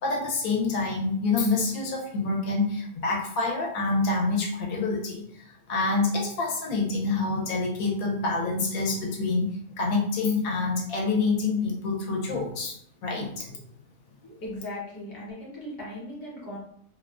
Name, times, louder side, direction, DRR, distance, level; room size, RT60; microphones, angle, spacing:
voice 1, 0.0-5.2 5.7-9.5 9.8-12.8 13.0-13.6, left 3 dB, 75° left, -1 dB, 1.0 m, -27 dB
voice 2, 14.2-16.6, left 1 dB, 20° left, -6 dB, 0.6 m, -38 dB
2.6 x 2.1 x 2.3 m, 0.66 s
omnidirectional pair, 1.5 m